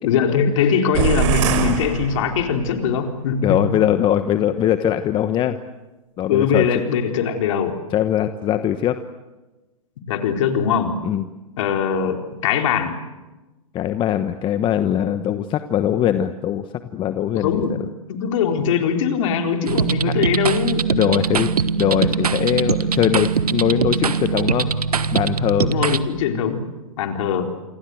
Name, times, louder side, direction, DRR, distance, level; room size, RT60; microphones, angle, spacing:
voice 1, 0.0-3.7 6.3-7.7 10.1-11.0 11.6-13.0 17.3-17.8 18.1-20.9 25.6-26.7 27.0-27.5, left 7 dB, 55° left, 4 dB, 4.1 m, -21 dB
sound 1, 0.9-2.8, right 11 dB, 55° right, 4.3 m, -23 dB
voice 2, 3.4-5.6 6.2-6.8 7.9-9.0 11.0-11.2 13.7-17.9 20.1-20.2 20.9-24.7 25.1-25.7, left 10 dB, 25° left, 10 dB, 1.1 m, -21 dB
sound 2, 19.7-26.0, right 6 dB, 85° right, 1.4 m, -22 dB
28.0 x 24.0 x 8.0 m, 1.1 s
hypercardioid pair, 120°, 19 cm